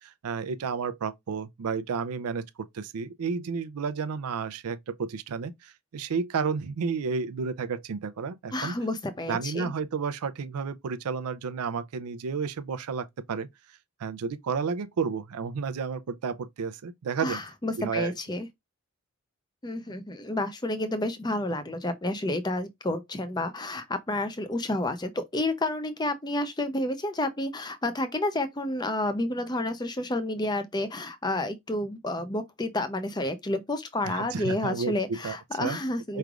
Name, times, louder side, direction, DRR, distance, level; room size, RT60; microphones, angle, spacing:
voice 1, 0.0-8.8 9.3-13.5 14.0-17.4 17.8-18.1 34.0-35.8 36.1-36.2, right 5 dB, 90° right, 0.4 m, -32 dB
voice 2, 8.5-9.7 17.2-18.5 19.6-36.2, left 1 dB, 20° left, 0.5 m, -30 dB
4.8 x 3.2 x 2.4 m
head